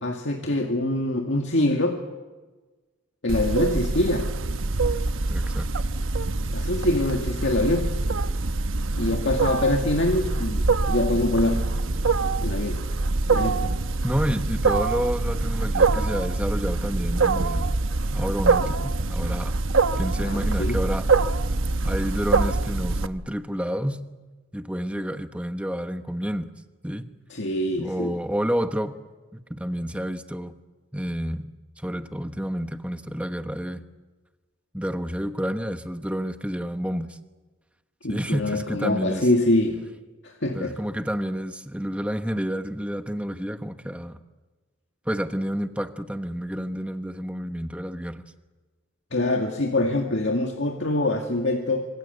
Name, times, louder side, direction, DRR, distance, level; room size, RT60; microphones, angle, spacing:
voice 1, 0.0-2.0 3.2-4.3 6.5-7.9 9.0-11.6 12.4-12.8 13.3-13.7 20.2-20.8 27.3-28.1 38.0-39.8 40.2-40.7 49.1-51.9, left 1 dB, 65° left, 2 dB, 2.1 m, -24 dB
Wild animals, 3.3-23.1, right 3 dB, 90° right, 1.0 m, -24 dB
voice 2, 5.3-5.7 14.0-17.7 18.1-19.5 20.0-21.4 21.8-24.0 24.5-26.5 26.8-27.1 27.8-29.0 29.3-30.6 30.9-31.5 31.8-33.8 34.7-37.2 38.1-39.3 40.5-44.2 45.0-48.2, equal, 5° right, 8 dB, 1.2 m, -29 dB
26.5 x 25.5 x 8.2 m, 1.3 s
head